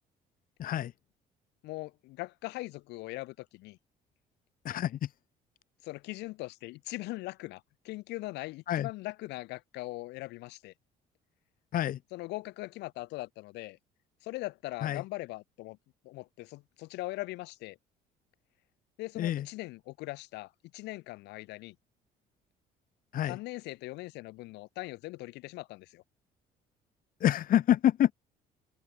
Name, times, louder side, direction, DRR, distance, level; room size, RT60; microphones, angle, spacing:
voice 1, 0.6-0.9 4.6-5.1 8.7-8.9 11.7-12.0 14.8-15.0 19.2-19.5 23.1-23.4 27.2-28.1, left 11 dB, 55° left, 1.2 m, -27 dB
voice 2, 1.6-3.8 5.8-10.7 12.1-13.8 14.2-15.8 16.0-17.8 19.0-21.8 23.3-26.0, left 20 dB, 90° left, 2.3 m, -40 dB
cardioid pair, 110°, 17 cm